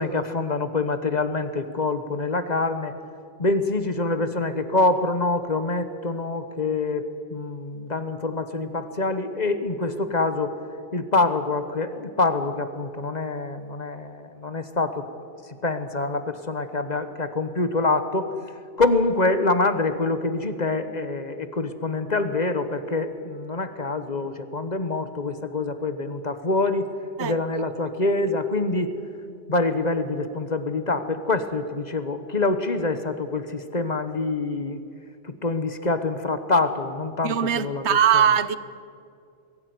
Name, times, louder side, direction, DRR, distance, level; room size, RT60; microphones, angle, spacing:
voice 1, 0.0-2.9 3.4-10.5 10.9-15.1 15.6-18.3 18.8-26.9 27.2-28.9 29.5-34.8 35.2-38.3, left 3 dB, 40° left, 1.3 m, -25 dB
voice 2, 37.2-38.6, right 8 dB, 70° right, 1.1 m, -20 dB
22.5 x 16.5 x 9.5 m
omnidirectional pair, 1.2 m